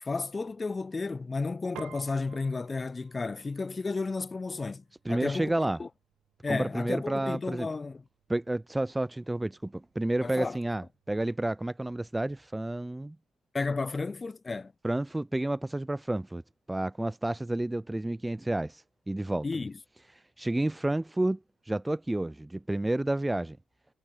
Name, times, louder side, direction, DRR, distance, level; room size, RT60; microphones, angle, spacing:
voice 1, 0.0-5.5 5.8-5.9 6.4-8.0 10.2-10.6 13.5-14.7 19.4-19.8, left 3 dB, 25° left, 2.4 m, -32 dB
Piano, 1.8-11.4, right 13 dB, 80° right, 5.1 m, -56 dB
voice 2, 5.0-5.8 6.5-7.7 8.3-13.2 14.8-16.4 16.7-19.4 20.4-21.4 21.7-23.6, right 1 dB, 10° right, 0.7 m, -30 dB
cardioid pair, 90°, 0 cm